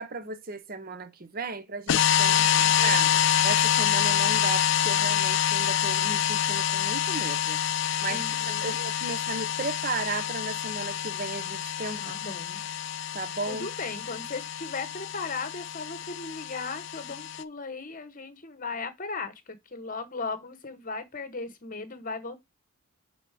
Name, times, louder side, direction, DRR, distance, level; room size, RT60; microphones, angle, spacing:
voice 1, 0.0-3.1 3.4-7.6 8.0-12.1 13.1-13.7, right 3 dB, 40° right, 0.7 m, -35 dB
sound 1, 1.9-17.4, left 10 dB, 55° left, 0.4 m, -26 dB
voice 2, 2.3-3.0 8.1-8.8 12.0-12.7 13.4-22.4, left 4 dB, 35° left, 1.0 m, -37 dB
6.1 x 3.9 x 4.7 m
head